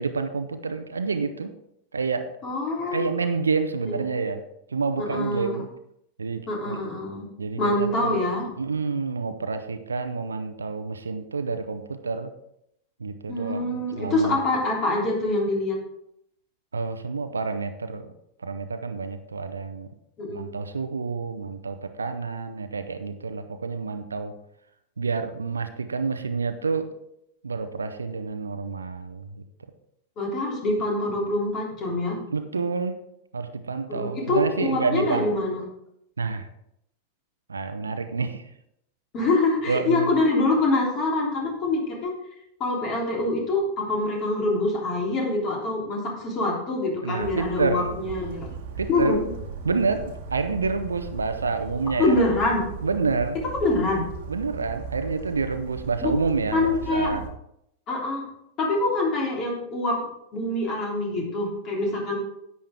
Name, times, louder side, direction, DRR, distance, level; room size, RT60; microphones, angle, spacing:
voice 1, 0.0-1.5 1.9-2.3 2.9-4.4 4.7-5.7 6.2-6.8 7.4-8.2 8.6-12.3 13.0-14.4 16.7-18.1 18.4-19.9 20.3-24.4 25.0-26.9 27.4-29.4 32.3-33.0 33.3-35.3 36.2-36.5 37.5-38.5 39.7-40.2 47.0-48.0 48.8-49.2 49.6-52.2 52.8-53.4 54.3-57.3, right 4 dB, 75° right, 9 dB, 0.8 m, -28 dB
voice 2, 2.4-3.1 3.9-4.0 5.0-5.6 6.5-7.2 7.6-8.5 13.3-15.8 20.2-20.5 30.2-32.2 33.9-35.6 39.1-42.1 42.6-48.5 48.9-49.2 52.0-52.6 53.6-54.1 56.0-56.1 56.5-57.2 57.9-58.2 58.6-62.2, left 2 dB, 35° left, -1 dB, 3.5 m, -25 dB
Bird vocalization bird call bird song, 47.2-57.3, right 5 dB, 55° right, 1.4 m, -38 dB
10.5 x 8.6 x 3.6 m, 0.77 s
figure-of-eight pair, 90°, 0 cm